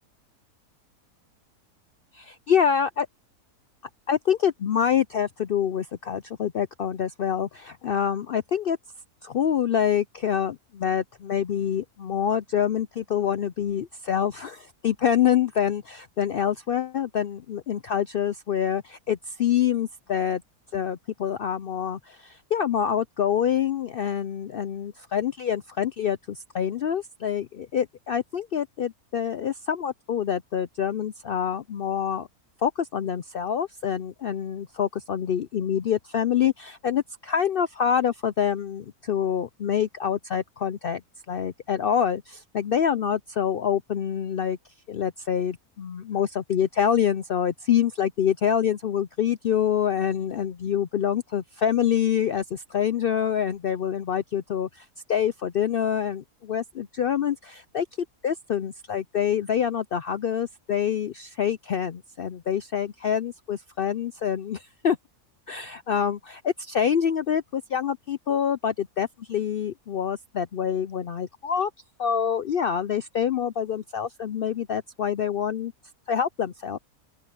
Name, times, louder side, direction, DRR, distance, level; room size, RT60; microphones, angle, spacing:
voice 1, 2.1-3.1 4.1-8.8 9.2-20.4 20.7-32.3 32.6-41.0 41.3-44.6 44.9-57.9 58.2-65.0 65.5-71.7 72.0-75.7 76.1-76.8, left 8 dB, 70° left, 0.5 m, -26 dB
open air
omnidirectional pair, 1.6 m